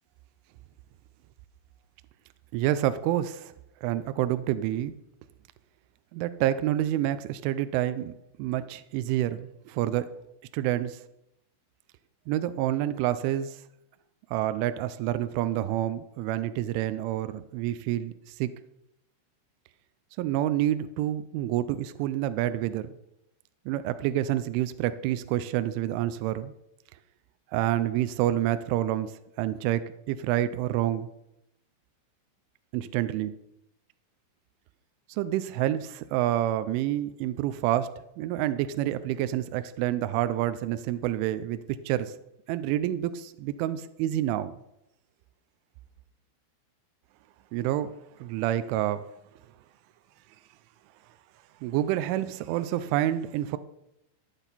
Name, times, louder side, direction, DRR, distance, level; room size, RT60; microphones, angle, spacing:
voice 1, 2.5-3.5 3.8-4.9 6.1-8.1 8.4-10.1 10.5-11.0 12.3-13.6 14.3-18.5 20.2-22.9 23.7-26.5 27.5-31.1 32.7-33.3 35.1-41.6 41.9-42.2 42.5-44.5 47.5-49.1 51.6-53.6, right 13 dB, 85° right, 12 dB, 3.0 m, -28 dB
15.0 x 10.0 x 4.1 m, 0.82 s
omnidirectional pair, 5.6 m